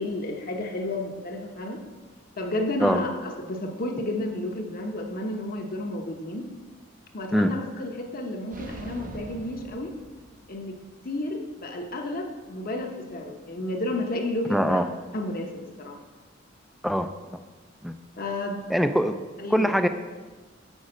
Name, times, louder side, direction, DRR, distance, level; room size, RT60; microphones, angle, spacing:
voice 1, 0.0-1.8 2.4-6.4 7.1-9.9 10.5-10.8 11.0-14.8 15.1-16.0 18.2-18.6 19.4-19.7, left 1 dB, 50° left, 3 dB, 0.9 m, -31 dB
sound 1, 8.5-10.7, right 2 dB, 45° right, 0.6 m, -42 dB
voice 2, 14.5-14.8 16.8-17.1 17.8-17.9 18.7-19.1 19.5-19.9, equal, ahead, 8 dB, 0.3 m, -22 dB
6.3 x 4.9 x 6.4 m, 1.3 s
head